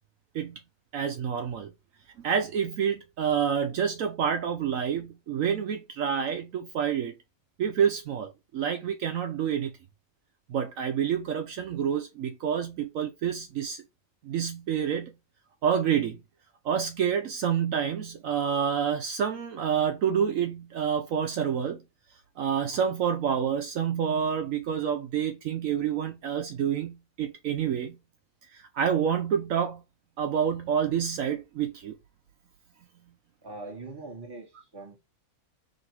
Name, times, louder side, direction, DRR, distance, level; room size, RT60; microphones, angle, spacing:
voice 1, 0.9-1.7 2.2-7.1 7.6-9.7 10.5-13.8 14.2-15.1 15.6-16.2 16.6-21.8 22.4-28.0 28.5-29.8 30.2-32.0, right 8 dB, 70° right, 1.0 m, -28 dB
voice 2, 33.4-35.0, right 3 dB, 15° right, 1.4 m, -42 dB
3.9 x 2.6 x 4.4 m
omnidirectional pair, 1.5 m